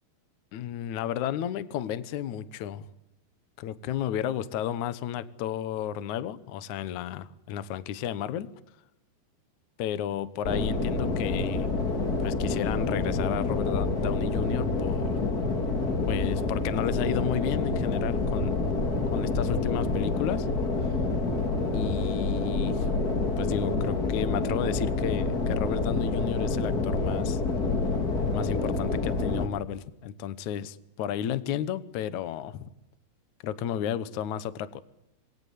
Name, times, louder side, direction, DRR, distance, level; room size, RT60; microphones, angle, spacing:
voice 1, 0.5-2.9 3.6-8.5 9.8-11.7 12.2-15.2 16.1-18.6 19.1-20.5 21.7-22.9 23.4-27.4 28.3-32.7 33.4-34.8, left 10 dB, 90° left, 14 dB, 1.7 m, -32 dB
sound 1, 10.4-29.5, left 3 dB, 35° left, 1.5 m, -27 dB
26.5 x 22.0 x 8.4 m, 0.89 s
omnidirectional pair, 5.2 m